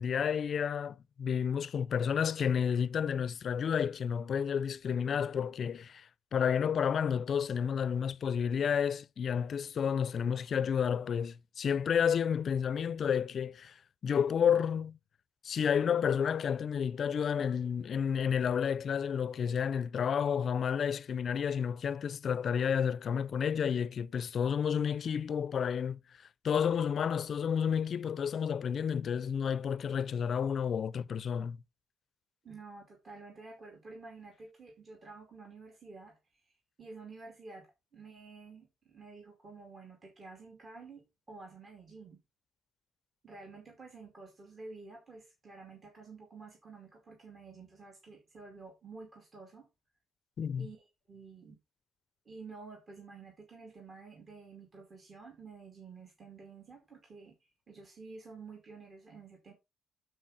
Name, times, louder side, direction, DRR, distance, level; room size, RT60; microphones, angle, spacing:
voice 1, 0.0-6.1 6.3-15.0 15.4-26.0 26.4-31.6 50.4-50.7, left 7 dB, 55° left, 0.4 m, -31 dB
voice 2, 32.4-42.2 43.2-49.7 50.6-51.6 52.3-59.5, right 4 dB, 40° right, 2.4 m, -51 dB
11.5 x 4.6 x 4.0 m
cardioid pair, 90°, 0 cm